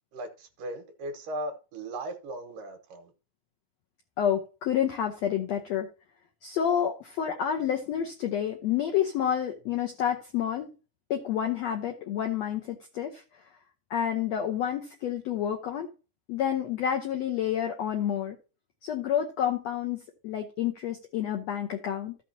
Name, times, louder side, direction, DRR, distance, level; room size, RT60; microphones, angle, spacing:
voice 1, 0.1-3.1, right 1 dB, 70° right, 2.6 m, -37 dB
voice 2, 4.2-5.9 6.4-10.7 11.1-13.2 13.9-15.9 16.3-18.4 18.8-22.1, left 9 dB, 80° left, 1.5 m, -29 dB
14.5 x 5.9 x 2.8 m
omnidirectional pair, 4.2 m